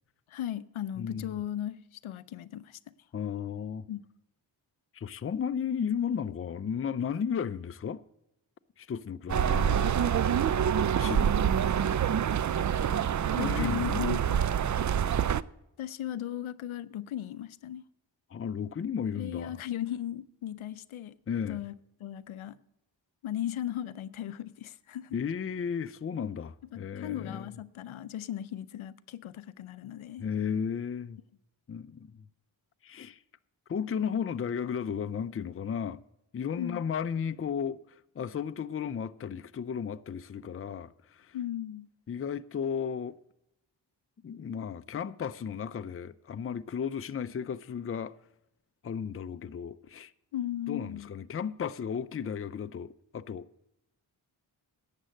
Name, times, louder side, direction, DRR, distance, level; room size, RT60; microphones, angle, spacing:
voice 1, 0.3-2.8 3.9-4.0 13.6-14.5 15.8-17.8 19.2-21.2 21.4-21.8 22.0-22.6 23.2-25.2 26.7-30.2 36.6-36.8 41.3-41.9 50.3-51.1, left 11 dB, 75° left, 0.6 m, -37 dB
voice 2, 1.0-1.4 3.1-3.9 4.9-8.0 8.8-10.1 11.0-11.5 13.4-14.1 18.3-19.6 21.3-21.6 25.1-27.5 30.2-31.2 31.7-32.2 32.8-33.2 33.7-36.0 36.3-37.8 38.2-41.4 42.1-43.2 44.2-48.2 48.8-50.1 50.7-53.5, left 7 dB, 30° left, 0.5 m, -34 dB
sound 1, 9.3-15.4, right 8 dB, 40° right, 0.4 m, -26 dB
11.5 x 7.5 x 6.4 m
cardioid pair, 40°, 49 cm